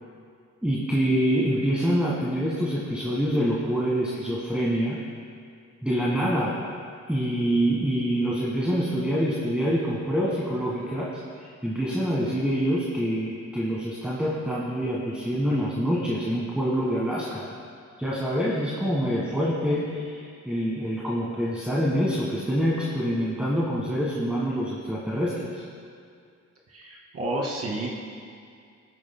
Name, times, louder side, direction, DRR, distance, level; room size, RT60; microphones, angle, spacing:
voice 1, 0.6-5.0 5.8-6.6 7.1-11.1 11.4-17.5 18.0-25.6, equal, 5° right, -6 dB, 1.5 m, -26 dB
voice 2, 26.7-27.9, right 1 dB, 55° right, -2 dB, 2.2 m, -30 dB
18.0 x 9.2 x 2.2 m, 2.2 s
cardioid pair, 90°, 30 cm